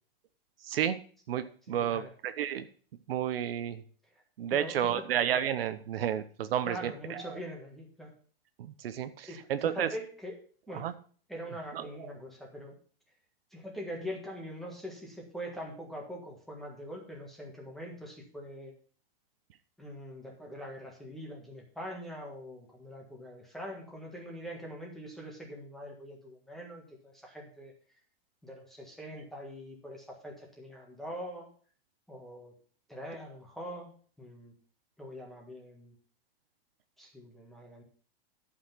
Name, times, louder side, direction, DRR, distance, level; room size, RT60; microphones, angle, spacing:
voice 1, 0.6-1.0 1.3-2.7 3.1-3.8 4.4-7.4 8.6-9.9 10.7-10.9 11.7-12.1, right 10 dB, 70° right, 11 dB, 1.0 m, -31 dB
voice 2, 1.7-2.1 4.5-5.1 6.6-8.1 9.3-10.4 10.7-10.9 11.3-12.8 13.5-18.7 19.8-27.7 28.4-31.5 32.1-32.5 32.9-33.9 34.2-34.5 35.0-35.9 37.0-37.8, equal, ahead, -1 dB, 1.5 m, -43 dB
11.5 x 5.9 x 5.7 m, 0.43 s
supercardioid pair, 175°, 30 cm